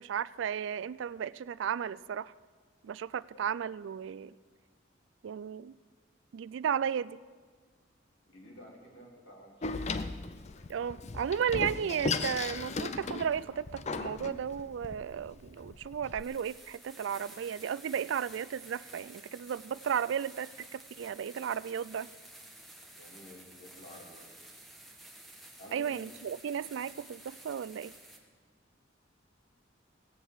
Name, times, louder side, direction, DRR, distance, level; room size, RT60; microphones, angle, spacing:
voice 1, 0.0-2.3 2.8-4.3 5.2-5.7 6.3-7.2 10.7-22.1 25.7-27.9, right 8 dB, 70° right, 19 dB, 0.3 m, -34 dB
voice 2, 8.3-9.8 23.0-24.3 25.6-26.0, equal, 65° left, -2 dB, 3.4 m, -51 dB
Door, 9.6-16.2, left 3 dB, 35° left, 0.5 m, -37 dB
sound 1, 13.0-13.1 14.9-15.0 15.6-15.7 16.1-28.2, right 1 dB, ahead, 1.3 m, -52 dB
17.0 x 7.2 x 8.1 m, 1.5 s
head